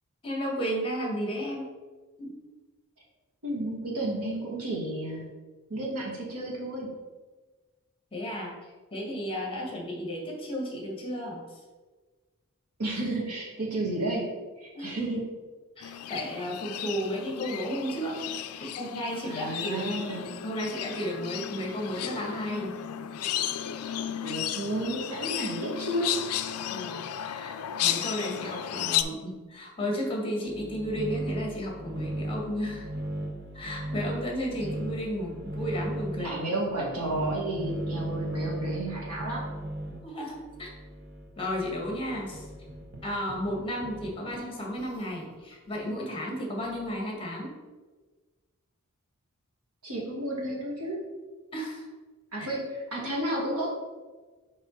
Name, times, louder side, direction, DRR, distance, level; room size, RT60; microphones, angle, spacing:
voice 1, 0.2-1.7 2.2-2.4 8.1-8.6 8.9-11.6 14.7-15.0 15.8-18.2 18.6-20.0 20.4-22.8 26.7-32.9 33.5-36.4 40.0-40.7 41.4-42.5 43.0-47.5 51.5-51.9 52.4-52.5, equal, 25° left, -1 dB, 1.5 m, -33 dB
voice 2, 3.4-5.3 5.7-6.9 12.8-14.3 14.6-15.3 19.2-20.3 24.2-26.1 36.2-39.4 49.8-51.0 52.3-53.7, right 1 dB, 80° right, -3 dB, 1.9 m, -32 dB
sound 1, 15.8-29.0, left 11 dB, 70° left, 0.4 m, -34 dB
sound 2, 30.4-40.0 40.3-45.1 45.5-45.9 46.6-46.9, right 1 dB, 50° right, 0.9 m, -37 dB
5.9 x 5.0 x 3.9 m, 1.3 s
head